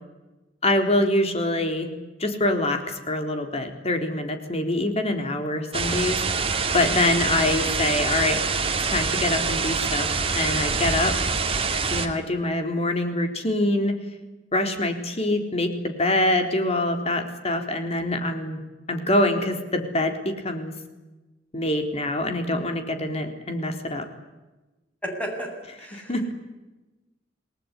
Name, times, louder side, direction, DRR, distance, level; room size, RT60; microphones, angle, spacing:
voice 1, 0.6-1.9 2.2-6.2 6.7-8.4 8.9-10.1 10.3-11.2 11.9-14.0 14.5-18.6 18.9-20.7 21.5-24.0 25.9-26.3, left 1 dB, 35° left, 6 dB, 3.9 m, -25 dB
sound 1, 5.7-12.1, right 4 dB, 30° right, 2.7 m, -25 dB
voice 2, 25.0-25.5 25.8-26.1, equal, 10° left, 2 dB, 8.0 m, -32 dB
29.0 x 20.0 x 9.8 m, 1.1 s
head